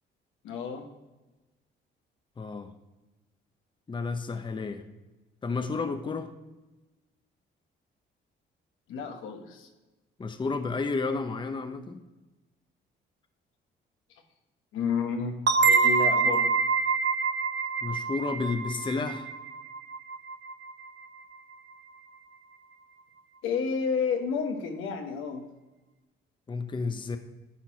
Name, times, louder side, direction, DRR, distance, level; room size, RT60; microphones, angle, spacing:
voice 1, 0.4-0.9 8.9-9.7 14.1-14.2 14.7-16.5 23.4-25.5, left 5 dB, 85° left, 4 dB, 1.2 m, -31 dB
voice 2, 2.4-2.7 3.9-4.8 5.4-6.3 10.2-12.0 17.8-19.3 26.5-27.2, left 4 dB, 25° left, 8 dB, 0.7 m, -31 dB
sound 1, 15.5-20.9, right 4 dB, 60° right, 0.7 m, -26 dB
10.0 x 4.4 x 4.7 m, 1.1 s
cardioid pair, 90°, 20 cm